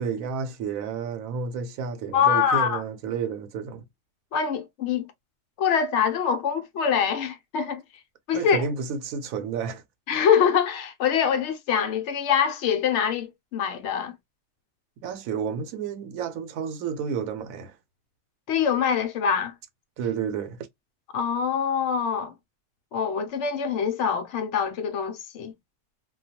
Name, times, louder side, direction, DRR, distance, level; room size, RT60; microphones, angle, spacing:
voice 1, 0.0-3.8 8.3-9.8 15.0-17.8 20.0-20.6, right 6 dB, 90° right, 1.0 m, -31 dB
voice 2, 2.1-2.8 4.3-5.0 5.6-7.8 8.3-8.7 10.1-14.1 18.5-19.5 21.1-22.3 22.9-25.5, left 7 dB, 65° left, 0.8 m, -24 dB
2.3 x 2.2 x 2.7 m
omnidirectional pair, 1.4 m